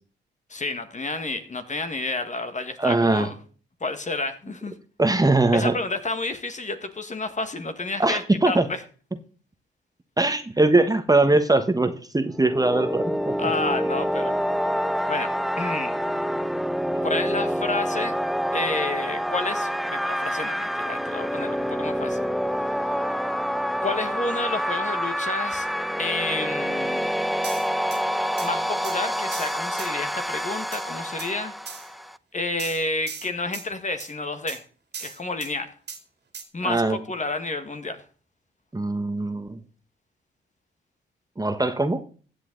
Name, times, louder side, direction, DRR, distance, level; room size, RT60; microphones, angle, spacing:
voice 1, 0.5-3.4 3.8-4.7 5.5-8.8 10.2-10.3 13.4-14.4 15.1-15.3 15.6-15.9 16.9-18.1 18.5-22.3 22.8-23.2 23.8-25.7 26.0-27.1 28.4-31.9 32.3-34.6 35.0-35.7 36.5-38.0, left 3 dB, 35° left, 9 dB, 1.7 m, -30 dB
voice 2, 2.8-3.3 5.0-5.7 8.0-8.6 10.2-13.3 36.6-37.0 38.7-39.6 41.4-42.0, right 2 dB, 15° right, 9 dB, 1.2 m, -21 dB
sound 1, 12.3-32.2, equal, ahead, 0.5 m, -27 dB
sound 2, 27.4-28.0 28.4-28.5 28.8-29.0 29.3-29.9 30.7-30.8 31.2-31.3 31.7-31.9 32.6-33.7 34.0-34.1 34.5-34.6 34.9-35.5 35.9-36.0 36.3-36.4, right 6 dB, 55° right, 2.3 m, -37 dB
15.0 x 8.3 x 3.9 m, 0.40 s
supercardioid pair, 50°, 21 cm